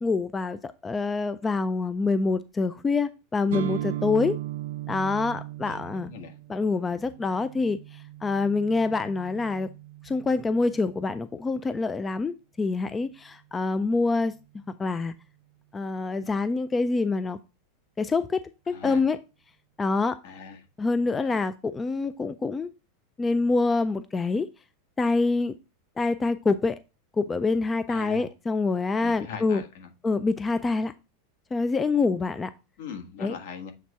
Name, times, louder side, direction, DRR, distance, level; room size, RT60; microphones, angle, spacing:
voice 1, 0.0-4.4 4.9-6.1 6.5-9.7 10.0-14.3 14.7-15.1 15.7-17.4 18.0-19.2 19.8-20.2 20.8-22.7 23.2-24.5 25.0-25.5 26.0-26.8 27.2-29.6 30.0-30.9 31.5-32.5 33.2-33.3, left 3 dB, 15° left, 0.3 m, -26 dB
sound 1, 3.5-11.3, right 14 dB, 80° right, 0.6 m, -38 dB
voice 2, 5.6-6.4 18.7-19.0 20.2-20.7 21.2-21.4 27.9-28.3 29.0-29.9 32.8-33.7, left 6 dB, 70° left, 1.6 m, -41 dB
7.6 x 3.5 x 4.1 m
supercardioid pair, 160°, 0 cm